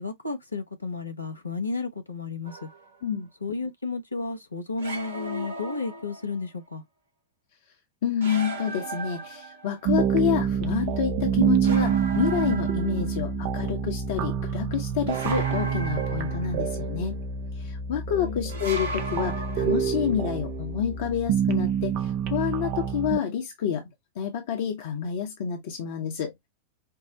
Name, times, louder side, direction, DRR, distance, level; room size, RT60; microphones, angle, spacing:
voice 1, 0.0-2.7 3.4-6.8 13.0-13.2 18.1-18.5, left 4 dB, 85° left, 0.9 m, -33 dB
sound 1, 2.4-3.0 4.8-6.4 8.2-9.9 11.6-13.3 15.1-16.8 18.5-20.1, right 2 dB, 70° right, 0.9 m, -37 dB
voice 2, 8.0-17.2 17.6-23.9 24.2-26.5, left 8 dB, 55° left, 0.9 m, -28 dB
sound 2, 9.9-23.2, right 7 dB, 45° right, 0.6 m, -27 dB
5.7 x 2.0 x 2.9 m
figure-of-eight pair, 90°, 0 cm